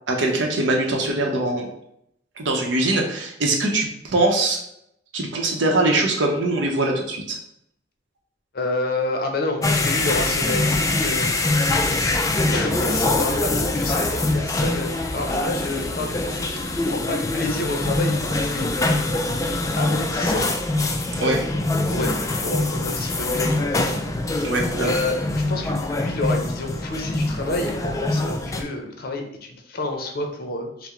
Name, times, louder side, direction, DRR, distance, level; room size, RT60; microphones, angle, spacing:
voice 1, 0.1-1.7 2.4-4.6 5.1-7.4 21.2-21.4 24.4-25.0, right 2 dB, 85° right, 2 dB, 0.7 m, -22 dB
voice 2, 8.5-11.3 12.5-18.8 19.4-20.5 21.9-22.1 22.4-24.0 24.7-30.9, left 2 dB, 55° left, 3 dB, 0.7 m, -29 dB
sound 1, 9.6-28.6, left 2 dB, 20° left, 0.3 m, -24 dB
5.6 x 2.1 x 3.0 m, 0.76 s
head